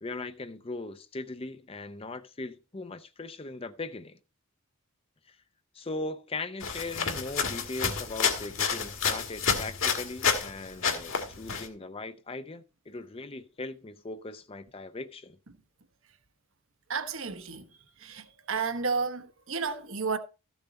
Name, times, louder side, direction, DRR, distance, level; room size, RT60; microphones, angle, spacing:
voice 1, 0.0-4.2 5.3-5.4 5.7-15.4, left 2 dB, 25° left, 0.6 m, -39 dB
sound 1, 6.6-10.5 10.8-11.7, left 6 dB, 65° left, 2.0 m, -29 dB
voice 2, 16.9-17.7 18.0-20.2, right 5 dB, 65° right, 1.2 m, -32 dB
14.0 x 7.0 x 4.0 m
head